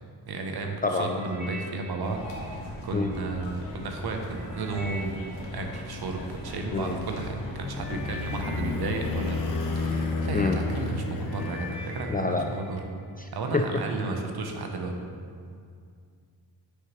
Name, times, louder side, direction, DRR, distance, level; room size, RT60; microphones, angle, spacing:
voice 1, 0.3-2.2 2.5-5.2 5.5-9.4 9.7-12.8 13.3-14.9, right 3 dB, 60° right, 3 dB, 0.9 m, -33 dB
voice 2, 0.8-1.2 2.9-3.1 6.7-7.0 10.3-10.6 12.1-12.6 13.2-13.8, left 3 dB, 20° left, 4 dB, 0.3 m, -27 dB
sound 1, 1.0-3.3 3.8-6.7 7.4-7.5 7.8-10.2 10.7-11.0 11.3-12.8 13.1-13.6 14.2-14.3, left 1 dB, 5° right, 1.4 m, -45 dB
sound 2, 2.0-9.9, left 1 dB, 70° left, 1.2 m, -41 dB
sound 3, 7.0-12.7, left 4 dB, 50° left, 0.8 m, -32 dB
6.4 x 5.6 x 3.1 m, 2.2 s
supercardioid pair, 45°, 44 cm